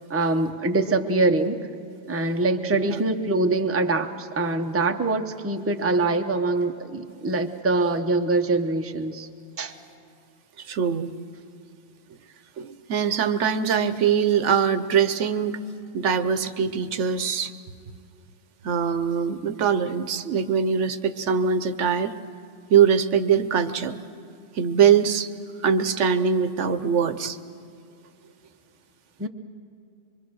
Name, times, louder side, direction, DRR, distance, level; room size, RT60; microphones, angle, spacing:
voice 1, 0.1-1.6 2.1-9.3 9.6-9.7 29.2-29.3, right 2 dB, 15° right, 5 dB, 0.7 m, -24 dB
voice 2, 10.7-11.1 12.6-15.6 15.9-17.5 18.6-22.1 22.7-24.0 24.5-25.3 25.6-27.4, right 7 dB, 80° right, 11 dB, 1.1 m, -22 dB
24.5 x 23.5 x 6.3 m, 2.6 s
omnidirectional pair, 1.2 m